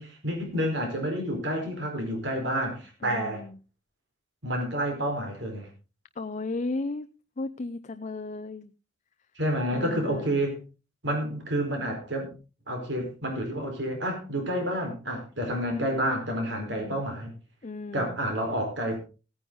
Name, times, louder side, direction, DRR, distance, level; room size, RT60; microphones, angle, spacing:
voice 1, 0.0-3.4 4.4-5.7 9.4-10.6 11.0-12.3 12.7-17.3 17.9-19.0, equal, 70° right, 3 dB, 4.4 m, -29 dB
voice 2, 3.0-3.6 6.2-7.1 7.4-8.7 9.7-10.4 16.6-17.0 17.6-18.2, left 3 dB, 40° left, 10 dB, 0.6 m, -35 dB
16.5 x 9.6 x 3.9 m, 0.32 s
head